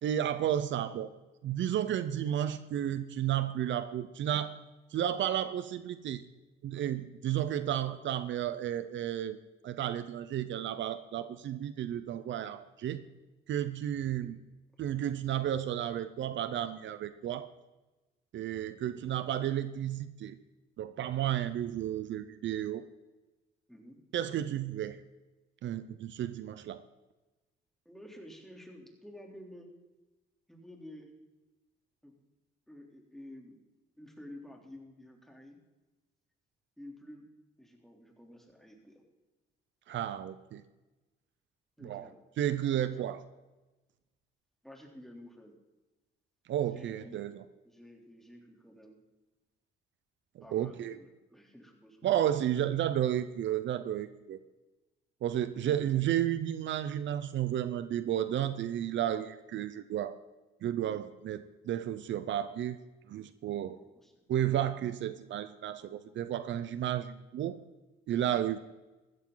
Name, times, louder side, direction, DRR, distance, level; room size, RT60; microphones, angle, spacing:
voice 1, 0.0-1.1 1.4-4.5 4.9-6.2 6.6-9.4 9.6-13.0 13.5-14.3 14.8-17.5 18.3-20.4 20.8-22.8 24.1-25.0 25.6-26.8 39.9-40.6 41.8-42.1 42.4-43.2 46.5-47.4 50.4-51.0 52.0-54.4 55.2-60.2 60.6-62.8 63.1-63.8 64.3-67.6 68.1-68.6, right 11 dB, 70° right, 12 dB, 0.8 m, -32 dB
voice 2, 27.8-29.7 30.5-31.1 32.0-32.1 32.7-33.6 34.0-35.6 36.8-37.3 37.6-39.0 41.8-42.2 42.7-43.1 44.6-45.5 46.6-47.3 47.6-49.0 50.4-52.6 55.5-55.7 63.6-64.1, left 1 dB, ahead, 1 dB, 3.4 m, -51 dB
15.5 x 13.5 x 4.0 m, 1.1 s
cardioid pair, 90°, 20 cm